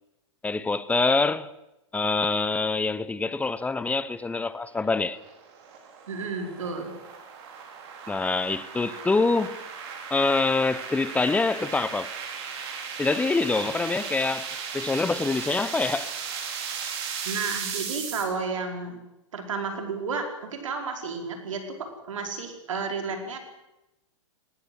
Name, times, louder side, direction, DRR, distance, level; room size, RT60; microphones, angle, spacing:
voice 1, 0.4-1.5 1.9-5.2 8.1-9.6 10.1-12.1 13.0-14.5 14.7-16.1, left 3 dB, 10° left, 0.9 m, -25 dB
sound 1, 4.3-18.2, right 6 dB, 55° right, 5.5 m, -36 dB
voice 2, 6.1-6.9 17.2-19.0 19.3-23.4, right 4 dB, 80° right, 5.0 m, -32 dB
19.5 x 18.5 x 8.0 m
hypercardioid pair, 120°, 16 cm